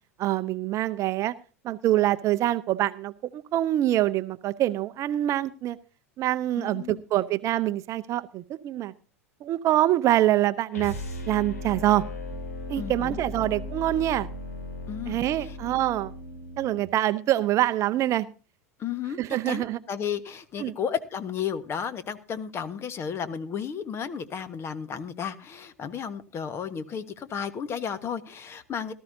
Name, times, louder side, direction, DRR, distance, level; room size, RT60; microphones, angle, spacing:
voice 1, 0.2-1.3 1.6-5.8 6.2-8.9 9.4-10.9 11.3-12.1 12.7-14.3 15.1-16.1 16.6-18.3 19.2-19.8 20.6-20.7, right 14 dB, 40° right, 14 dB, 0.6 m, -25 dB
voice 2, 6.6-7.0 12.8-13.2 14.9-15.6 18.8-19.2 19.5-28.9, left 7 dB, 30° left, 13 dB, 1.3 m, -33 dB
sound 1, 10.7-16.9, left 2 dB, 75° left, 3.2 m, -37 dB
17.5 x 13.5 x 2.7 m, 0.34 s
figure-of-eight pair, 85°, 8 cm